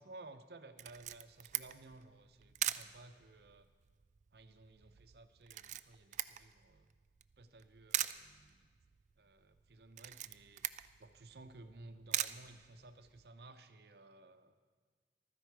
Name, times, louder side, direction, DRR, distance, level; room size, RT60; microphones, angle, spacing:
voice 1, 0.0-3.7 4.3-6.9 7.4-8.6 9.2-10.7 11.0-14.5, right 2 dB, 65° right, 9 dB, 0.8 m, -56 dB
Camera, 0.8-13.3, right 13 dB, 40° right, 0.3 m, -43 dB
14.5 x 13.0 x 4.7 m, 1.5 s
head